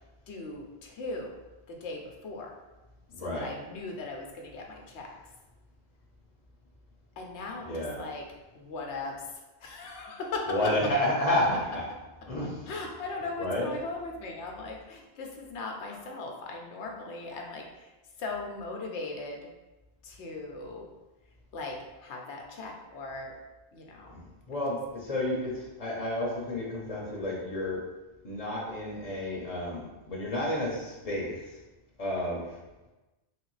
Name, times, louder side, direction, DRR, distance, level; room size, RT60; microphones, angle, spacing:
voice 1, 0.3-1.4 1.7-2.5 3.2-5.1 7.2-8.3 8.5-9.3 9.6-10.7 12.4-17.9 18.2-19.4 20.0-20.9 21.5-23.3 23.7-24.2, left 3 dB, 80° left, 1 dB, 1.0 m, -38 dB
voice 2, 3.2-3.5 7.7-8.0 10.5-11.8 12.2-12.6 13.4-13.7 24.1-24.2 24.5-27.8 28.2-31.4 32.0-32.4, left 1 dB, 35° left, -4 dB, 0.8 m, -30 dB
3.4 x 3.2 x 3.1 m, 1.1 s
omnidirectional pair, 1.2 m